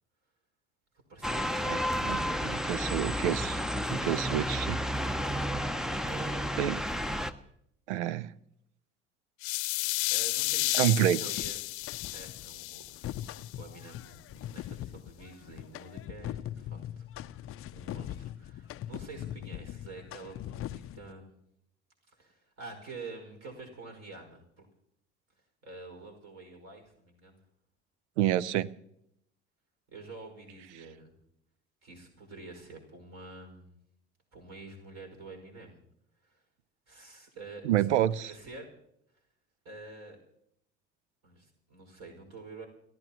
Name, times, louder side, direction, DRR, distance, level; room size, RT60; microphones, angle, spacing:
voice 1, 1.1-3.2 4.1-4.4 6.0-6.6 10.1-11.6 12.1-21.4 22.1-24.7 25.6-27.4 29.9-31.1 31.8-33.8 34.3-35.8 36.2-36.4 36.9-37.9 38.2-38.7 39.6-40.2 41.2-42.7, right 3 dB, 50° right, 3 dB, 5.6 m, -48 dB
sound 1, 1.2-7.3, equal, ahead, 0.8 m, -31 dB
voice 2, 2.0-3.6 3.9-4.8 6.6-6.8 7.9-8.3 10.7-11.2 28.2-28.7 37.6-38.3, right 12 dB, 75° right, 21 dB, 0.7 m, -28 dB
sound 2, 9.4-13.5, left 23 dB, 70° left, 0.8 m, -32 dB
sound 3, 11.4-12.5 12.8-21.1, left 12 dB, 40° left, 0.6 m, -41 dB
30.0 x 14.0 x 3.0 m, 0.75 s
hypercardioid pair, 65°, 34 cm